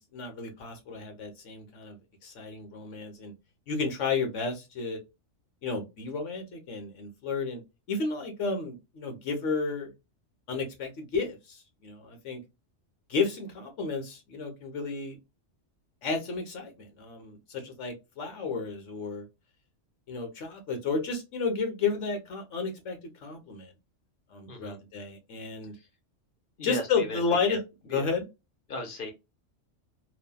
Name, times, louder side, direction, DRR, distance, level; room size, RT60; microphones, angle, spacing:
voice 1, 0.1-2.0 2.2-3.3 3.7-5.0 5.6-7.6 7.9-9.9 10.5-12.4 13.1-15.2 16.0-19.2 20.1-23.7 24.3-25.7 26.6-27.6 27.9-28.3, left 4 dB, 70° left, 1.2 m, -32 dB
voice 2, 24.5-24.8 25.7-25.9 26.6-27.2 27.5-27.6 27.9-28.1 28.7-29.1, left 3 dB, 50° left, 0.9 m, -36 dB
3.1 x 2.2 x 2.2 m
omnidirectional pair, 1.3 m